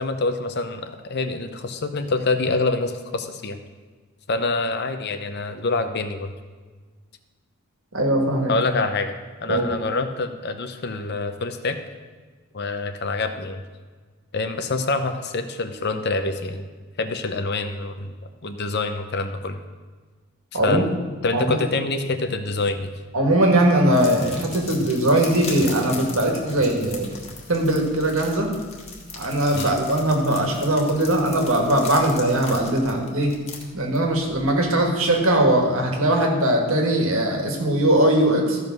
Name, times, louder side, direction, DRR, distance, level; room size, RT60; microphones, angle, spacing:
voice 1, 0.0-3.6 4.3-6.3 8.5-11.8 12.5-13.6 14.3-16.7 17.0-18.1 18.4-19.6 20.6-20.9 21.2-22.9 29.5-29.7, left 3 dB, 50° left, 8 dB, 0.7 m, -26 dB
voice 2, 7.9-8.5 9.5-9.6 20.5-20.8 21.3-21.6 23.1-27.1 27.5-28.5 29.2-33.4 33.7-38.6, right 1 dB, 65° right, 2 dB, 1.9 m, -20 dB
sound 1, 23.9-35.6, left 4 dB, 30° left, 1.7 m, -39 dB
14.0 x 5.4 x 6.1 m, 1.4 s
head